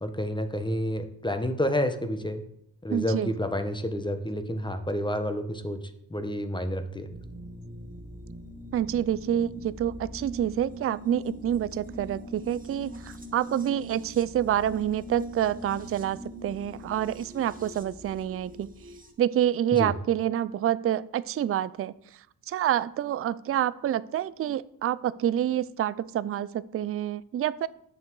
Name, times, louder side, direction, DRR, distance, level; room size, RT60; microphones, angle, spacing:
voice 1, 0.0-2.4 2.8-7.1 19.7-19.9, equal, 10° left, 8 dB, 1.0 m, -29 dB
voice 2, 2.9-3.3 8.7-18.7 19.2-21.9 22.5-27.7, right 11 dB, 35° right, 17 dB, 0.4 m, -27 dB
sound 1, 7.1-19.1, equal, 20° right, 1.5 m, -42 dB
9.2 x 6.6 x 4.7 m, 0.75 s
cardioid pair, 80°, 44 cm